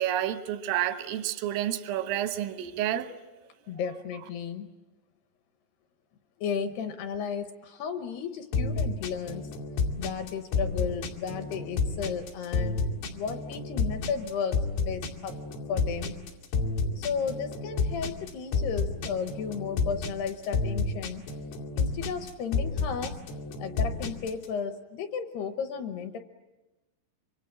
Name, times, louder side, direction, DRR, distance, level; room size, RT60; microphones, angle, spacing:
voice 1, 0.0-3.1, right 11 dB, 85° right, 3.8 m, -29 dB
voice 2, 3.7-4.7 6.4-9.5 10.0-12.8 13.1-15.3 15.7-16.2 17.0-21.2 21.8-23.2 23.6-26.2, left 6 dB, 75° left, 2.6 m, -34 dB
sound 1, 8.5-24.5, left 4 dB, 90° left, 5.1 m, -30 dB
26.0 x 25.0 x 8.8 m
omnidirectional pair, 5.7 m